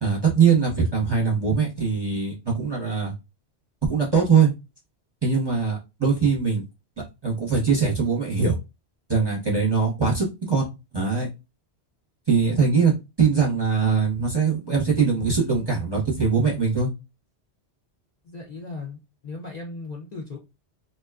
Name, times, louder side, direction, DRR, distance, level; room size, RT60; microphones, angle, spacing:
voice 1, 0.0-3.1 3.9-4.5 5.2-6.6 7.2-8.6 9.1-10.7 10.9-11.3 12.3-12.9 13.2-16.9, right 5 dB, 25° right, 0.7 m, -21 dB
voice 2, 18.2-20.4, left 3 dB, 50° left, 0.6 m, -37 dB
2.5 x 2.2 x 2.3 m
omnidirectional pair, 1.1 m